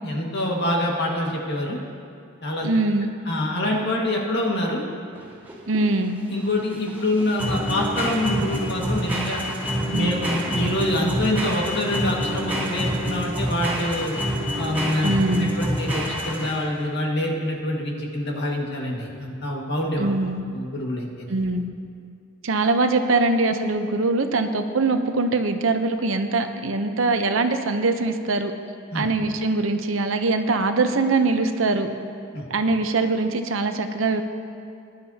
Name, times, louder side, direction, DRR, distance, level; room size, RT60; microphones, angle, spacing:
voice 1, 0.0-1.8 2.4-2.7 3.3-4.8 6.3-9.4 9.9-14.1 14.6-15.1 15.4-20.1 20.5-21.3 28.9-29.1 32.3-32.4, left 1 dB, 60° left, -1 dB, 1.8 m, -26 dB
voice 2, 2.6-3.1 5.7-6.2 9.9-10.2 15.0-15.5 20.0-20.4 21.3-21.7 22.4-28.5 28.9-31.9 32.5-34.2, right 3 dB, 75° right, 7 dB, 0.8 m, -22 dB
sound 1, 5.1-16.8, equal, 10° right, 2.6 m, -27 dB
19.5 x 11.5 x 2.8 m, 2.4 s
head